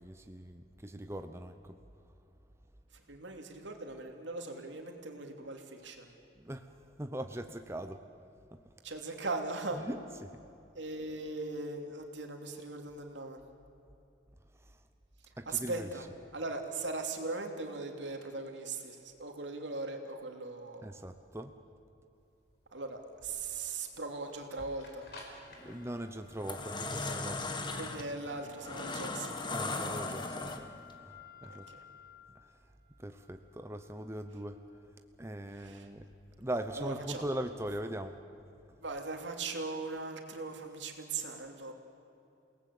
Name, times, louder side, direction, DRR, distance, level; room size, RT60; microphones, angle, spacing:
voice 1, 0.0-1.7 6.4-8.0 8.5-8.6 9.7-10.3 14.6-14.8 15.4-15.9 20.8-21.5 25.6-27.6 29.5-30.7 31.0-31.7 33.0-34.6 35.2-36.1 36.4-38.1, right 1 dB, 15° right, 7 dB, 0.8 m, -40 dB
voice 2, 2.9-6.1 8.8-9.8 10.7-13.4 15.5-16.1 16.3-20.9 22.7-25.0 27.7-29.4 31.4-31.8 35.6-35.9 36.7-37.2 38.8-41.7, right 3 dB, 75° right, 3 dB, 2.9 m, -39 dB
sound 1, 22.2-36.3, left 5 dB, 60° left, 4.9 m, -56 dB
sound 2, 25.5-25.8 26.2-30.9, left 3 dB, 25° left, 1.5 m, -37 dB
29.0 x 18.5 x 8.5 m, 2.8 s
head